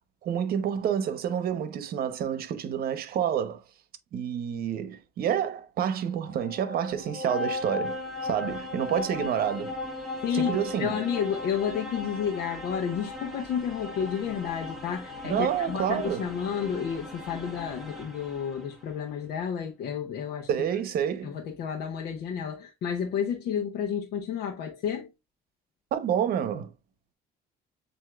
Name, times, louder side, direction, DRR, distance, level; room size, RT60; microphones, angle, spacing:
voice 1, 0.2-3.6 4.1-9.8 10.3-11.0 15.2-16.3 20.5-21.3 25.9-26.7, right 9 dB, 60° right, 0.8 m, -28 dB
sound 1, 6.1-18.9, left 2 dB, ahead, 1.3 m, -37 dB
voice 2, 10.2-20.5 21.2-25.1, left 8 dB, 70° left, 0.9 m, -31 dB
7.5 x 2.7 x 2.4 m
cardioid pair, 110°, 17 cm